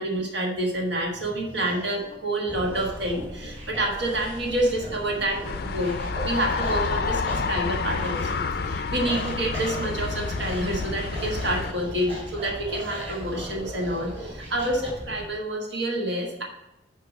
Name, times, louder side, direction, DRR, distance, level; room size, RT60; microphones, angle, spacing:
voice 1, 0.0-6.0 6.2-16.4, right 1 dB, 75° right, 0 dB, 1.5 m, -28 dB
sound 1, 0.6-14.9, right 1 dB, 35° right, 3.0 m, -40 dB
sound 2, 2.5-15.3, equal, 20° right, 1.9 m, -41 dB
sound 3, 5.4-11.7, left 4 dB, 55° left, 0.4 m, -29 dB
7.8 x 4.7 x 6.1 m, 0.91 s
head